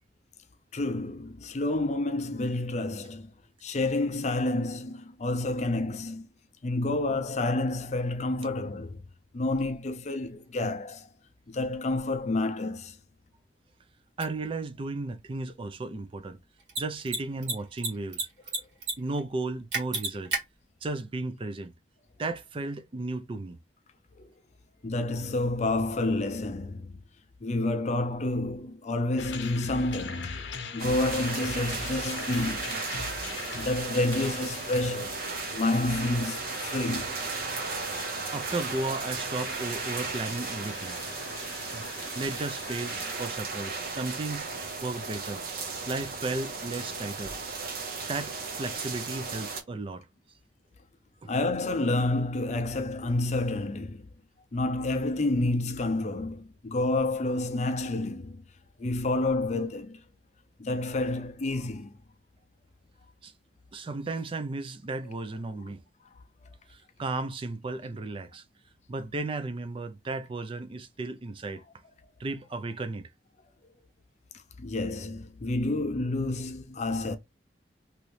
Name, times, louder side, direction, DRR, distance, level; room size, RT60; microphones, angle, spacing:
voice 1, 0.7-3.3 3.6-6.3 6.6-9.0 9.3-11.1 11.5-13.0 24.2-24.3 24.8-27.0 27.4-30.4 30.7-32.8 33.6-35.3 35.5-37.2 51.2-54.1 54.5-58.4 58.8-60.0 60.6-62.0 74.3-77.2, left 2 dB, 40° left, 0.5 m, -29 dB
voice 2, 14.2-16.4 16.8-18.3 19.0-20.3 20.8-21.7 22.2-23.6 38.3-41.0 41.7-41.9 42.2-44.5 44.8-45.4 45.9-47.4 48.1-50.1 51.2-51.3 63.2-63.3 63.7-65.8 66.7-68.4 68.9-71.6 72.2-73.1, right 3 dB, 30° right, 0.4 m, -34 dB
Mechanisms, 14.2-14.3 16.6-16.8 17.1-17.2 17.4-18.2 18.5-18.9 19.2-19.3 19.7-20.4, right 3 dB, 85° right, 1.5 m, -29 dB
sound 1, 29.2-43.5, left 5 dB, 80° left, 0.7 m, -42 dB
sound 2, 30.8-49.6, right 4 dB, 55° right, 0.7 m, -35 dB
3.0 x 2.6 x 3.1 m
head